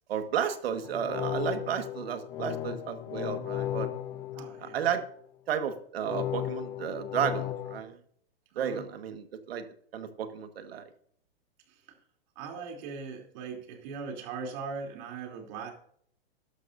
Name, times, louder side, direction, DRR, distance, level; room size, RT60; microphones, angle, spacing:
voice 1, 0.1-3.9 4.6-5.0 5.5-8.0 8.5-9.6 9.9-10.8, right 8 dB, 70° right, 8 dB, 1.7 m, -32 dB
sound 1, 0.8-5.2 6.0-7.8, left 12 dB, 15° left, 0.3 m, -35 dB
voice 2, 4.3-4.9 8.5-8.8 12.4-15.7, right 5 dB, 45° right, 3 dB, 3.1 m, -39 dB
12.5 x 12.0 x 2.6 m, 0.62 s
hypercardioid pair, 135°, 31 cm